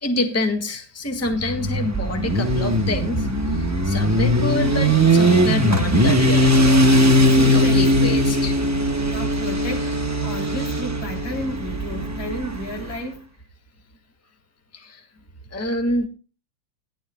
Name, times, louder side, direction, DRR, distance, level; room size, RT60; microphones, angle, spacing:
voice 1, 0.0-6.7 7.5-8.5 14.7-15.0 15.5-16.1, left 2 dB, 10° left, 1.6 m, -27 dB
Motorcycle, 1.2-12.9, equal, 15° right, 0.7 m, -19 dB
voice 2, 7.3-8.1 8.4-8.5 9.0-10.0 10.2-13.3, right 1 dB, 80° left, 4.0 m, -32 dB
18.5 x 11.5 x 2.2 m
omnidirectional pair, 2.1 m